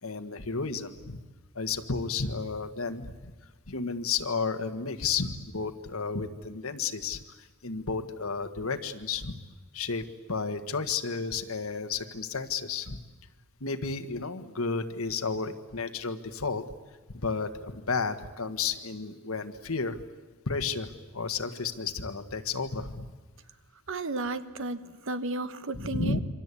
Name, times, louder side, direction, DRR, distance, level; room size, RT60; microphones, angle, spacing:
voice 1, 0.0-1.2 1.5-3.3 3.7-7.2 7.6-9.3 9.7-13.0 13.6-16.6 17.1-20.0 20.5-23.1 25.9-26.2, left 4 dB, 75° left, 8 dB, 1.6 m, -32 dB
voice 2, 23.9-26.2, right 2 dB, 65° right, 12 dB, 1.2 m, -33 dB
27.0 x 25.0 x 8.5 m, 1.3 s
head